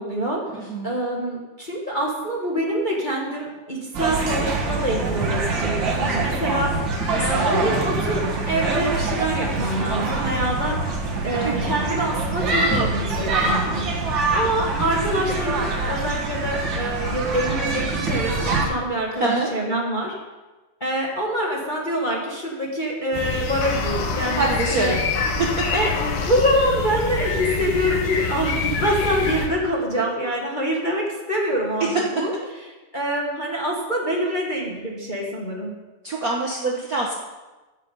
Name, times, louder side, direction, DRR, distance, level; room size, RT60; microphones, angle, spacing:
voice 1, 0.0-6.8 7.2-10.8 11.2-13.9 14.3-20.1 20.8-24.9 25.7-25.9 26.2-32.3 32.9-35.7, equal, 25° left, -3 dB, 1.0 m, -25 dB
voice 2, 0.6-1.0 6.5-7.8 11.4-11.8 19.2-19.5 24.4-25.0 25.4-25.5 31.8-32.0 36.0-37.1, right 3 dB, 85° right, -2 dB, 0.7 m, -25 dB
sound 1, 3.9-18.7, right 3 dB, 45° right, 1.9 m, -24 dB
sound 2, 23.1-29.5, left 4 dB, 90° left, 2.8 m, -26 dB
15.5 x 6.5 x 5.4 m, 1.2 s
omnidirectional pair, 3.4 m